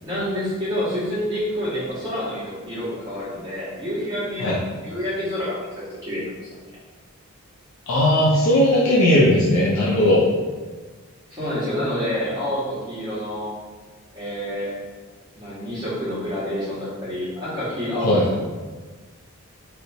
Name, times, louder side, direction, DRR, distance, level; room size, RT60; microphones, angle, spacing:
voice 1, 0.0-4.6 4.8-6.6 11.3-13.5 14.1-14.7 15.3-18.4, equal, 20° right, -10 dB, 1.3 m, -28 dB
voice 2, 7.9-10.3 18.0-18.2, left 1 dB, 70° left, -6 dB, 0.5 m, -17 dB
3.1 x 2.8 x 2.7 m, 1.3 s
head